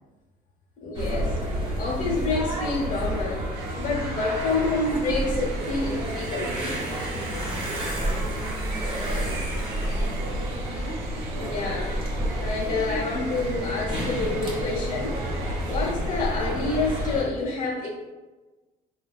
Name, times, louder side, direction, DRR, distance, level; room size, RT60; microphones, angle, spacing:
voice 1, 0.8-1.4 1.7-3.5 3.8-6.9 11.3-15.2 15.7-17.9, left 3 dB, 50° left, -2 dB, 0.9 m, -28 dB
sound 1, 0.9-17.2, right 1 dB, 30° right, 1.1 m, -29 dB
sound 2, 3.5-15.9, right 4 dB, 90° right, 0.4 m, -43 dB
voice 2, 7.1-10.4, equal, 5° left, -5 dB, 0.9 m, -43 dB
3.8 x 2.3 x 2.4 m, 1.2 s
cardioid pair, 110°, 17 cm